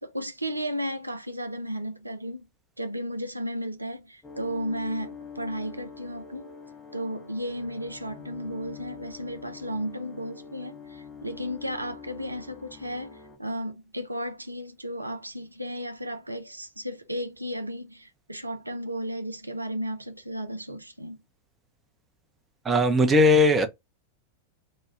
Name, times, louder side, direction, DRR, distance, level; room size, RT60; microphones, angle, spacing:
voice 1, 0.0-2.4 2.8-6.4 6.9-21.2, equal, 85° right, 0.4 m, -34 dB
sound 1, 4.2-13.4, left 6 dB, 20° left, 0.7 m, -45 dB
voice 2, 22.6-23.7, left 1 dB, 20° right, 0.6 m, -19 dB
3.0 x 2.2 x 3.2 m
figure-of-eight pair, 90°, 0 cm